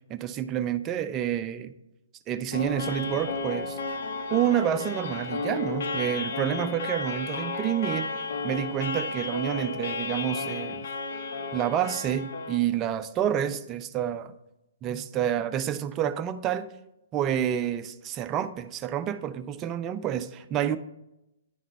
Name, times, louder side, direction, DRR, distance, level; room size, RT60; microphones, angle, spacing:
voice 1, 0.1-1.7 2.3-4.0 4.3-8.1 8.4-10.9 11.5-14.3 14.8-16.7 17.1-20.8, right 10 dB, 25° right, 0.4 m, -28 dB
sound 1, 2.5-12.6, left 3 dB, 60° left, 0.7 m, -33 dB
10.0 x 3.9 x 4.2 m
figure-of-eight pair, 120°, 0 cm